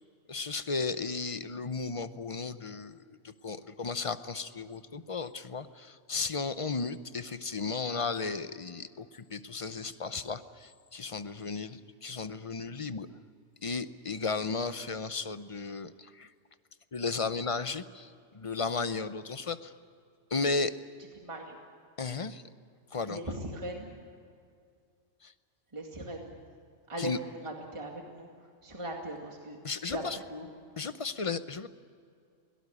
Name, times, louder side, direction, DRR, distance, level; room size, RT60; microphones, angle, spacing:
voice 1, 0.3-13.1 13.6-16.3 16.9-19.7 20.3-20.7 22.0-22.4 22.9-23.2 25.2-25.3 27.0-27.2 29.6-30.2 30.8-31.7, left 4 dB, 35° left, 12 dB, 0.6 m, -34 dB
voice 2, 21.2-21.6 23.1-23.9 25.7-26.3 26.9-28.3 28.6-29.6 29.9-30.0 30.3-30.5, right 1 dB, 25° right, 1 dB, 2.3 m, -39 dB
22.0 x 18.0 x 9.9 m, 2.3 s
omnidirectional pair, 1.3 m